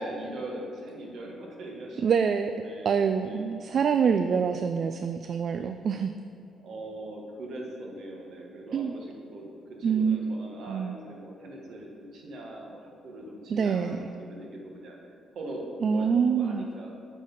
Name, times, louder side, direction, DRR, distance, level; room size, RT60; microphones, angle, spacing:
voice 1, 0.0-2.1 2.6-3.7 4.2-4.4 6.6-12.8 13.0-15.0 15.3-17.0, right 1 dB, 70° right, -1 dB, 1.5 m, -41 dB
voice 2, 2.0-2.5 2.8-6.1 8.7-8.9 9.8-10.2 10.7-10.9 13.5-14.1 15.8-16.7, right 6 dB, 55° right, 8 dB, 0.3 m, -25 dB
8.2 x 4.0 x 5.4 m, 2.5 s
cardioid pair, 90°, 0 cm